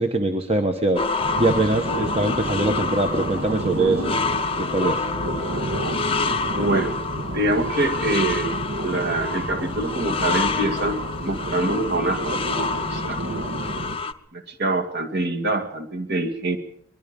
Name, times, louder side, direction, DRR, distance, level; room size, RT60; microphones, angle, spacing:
voice 1, 0.0-4.0 4.6-5.1, right 2 dB, 25° right, 5 dB, 1.2 m, -23 dB
sound 1, 1.0-14.1, left 4 dB, 25° left, 0.7 m, -28 dB
sound 2, 1.2-14.0, right 1 dB, 65° right, 1.7 m, -30 dB
voice 2, 6.4-7.0 7.3-8.5 8.8-12.6 12.9-13.2 14.3-16.6, right 2 dB, 50° right, 5 dB, 2.4 m, -25 dB
23.5 x 21.5 x 5.4 m, 0.69 s
head